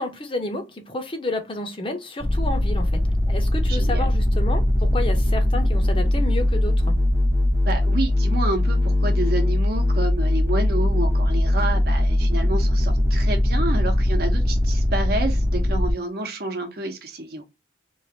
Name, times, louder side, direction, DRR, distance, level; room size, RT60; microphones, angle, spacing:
voice 1, 0.0-6.9, left 2 dB, 30° left, 0.6 m, -30 dB
sound 1, 2.2-15.9, left 1 dB, 15° right, 0.6 m, -20 dB
voice 2, 3.7-4.1 7.6-17.5, right 2 dB, 55° right, 0.8 m, -29 dB
3.1 x 2.4 x 2.8 m
head